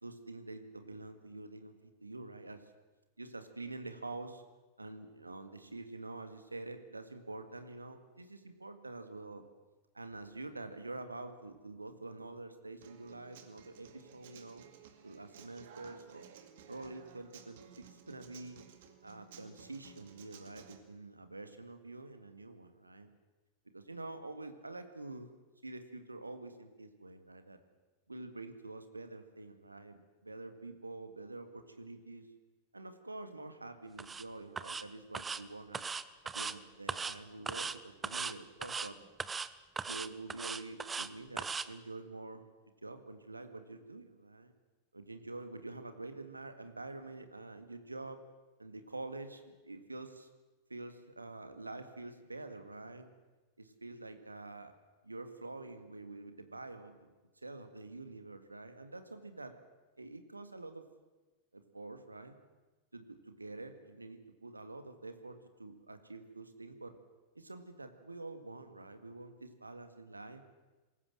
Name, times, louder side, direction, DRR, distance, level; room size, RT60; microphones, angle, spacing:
voice 1, 0.0-1.7 2.0-2.6 3.2-4.4 4.8-9.4 9.9-14.7 15.0-16.3 16.7-18.7 19.0-23.1 23.7-25.3 25.6-27.6 28.1-32.3 32.7-35.8 36.3-39.0 39.9-42.5 42.8-44.5 44.9-48.2 48.6-50.3 50.7-53.1 53.6-54.7 55.0-57.1 57.4-59.5 60.0-60.8 61.5-62.4 62.9-66.9 67.4-70.4, right 2 dB, 80° right, 8 dB, 2.0 m, -47 dB
Human voice / Acoustic guitar, 12.8-20.8, right 8 dB, 55° right, 2.2 m, -57 dB
sound 1, 34.0-34.2 34.6-34.8 35.1-35.4 35.7-36.5 36.9-37.2 37.5-37.8 38.0-38.3 38.6-38.9 39.2-39.5 39.8-41.1 41.4-41.7, right 5 dB, 15° right, 0.9 m, -38 dB
21.0 x 18.0 x 7.6 m, 1.2 s
figure-of-eight pair, 90°, 0 cm